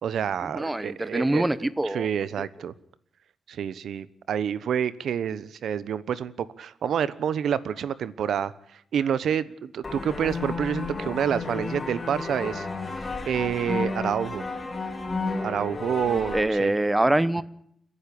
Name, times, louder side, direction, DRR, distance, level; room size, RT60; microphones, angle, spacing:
voice 1, 0.0-2.7 3.5-12.7 13.3-14.4 15.4-16.7, right 8 dB, 85° right, 17 dB, 1.1 m, -28 dB
voice 2, 0.5-2.1 16.3-17.4, right 1 dB, 10° right, 18 dB, 0.9 m, -24 dB
sound 1, 9.8-16.4, left 3 dB, 25° left, 4.6 m, -32 dB
30.0 x 11.0 x 8.6 m, 0.69 s
wide cardioid pair, 125°, 0 cm